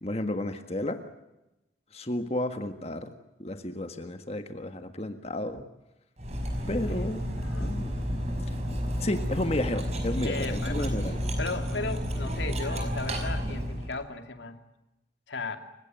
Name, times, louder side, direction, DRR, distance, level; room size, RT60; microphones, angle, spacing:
voice 1, 0.0-1.0 1.9-3.1 3.4-5.6 6.7-7.3 7.6-7.9 9.0-11.2, left 1 dB, 35° left, 7 dB, 1.6 m, -32 dB
Cutlery silverware, 6.2-13.9, equal, 35° right, 5.4 m, -31 dB
voice 2, 7.4-7.8 10.2-10.9 11.4-14.6 15.3-15.6, left 3 dB, 80° left, 7 dB, 2.6 m, -36 dB
29.5 x 17.0 x 9.2 m, 0.93 s
head